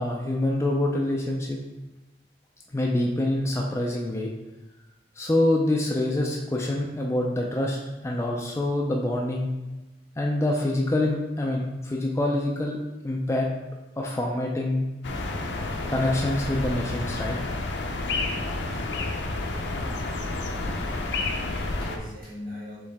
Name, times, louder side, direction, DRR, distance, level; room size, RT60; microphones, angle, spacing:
voice 1, 0.0-1.6 2.7-4.3 5.2-7.8 8.0-9.5 10.2-12.8 13.0-13.5 14.0-14.9 15.9-17.4, left 1 dB, 15° left, -1 dB, 0.3 m, -26 dB
sound 1, 15.0-22.0, left 2 dB, 85° left, 0.5 m, -30 dB
voice 2, 20.7-22.8, left 1 dB, 50° right, -7 dB, 1.5 m, -41 dB
4.5 x 3.1 x 3.4 m, 1.1 s
head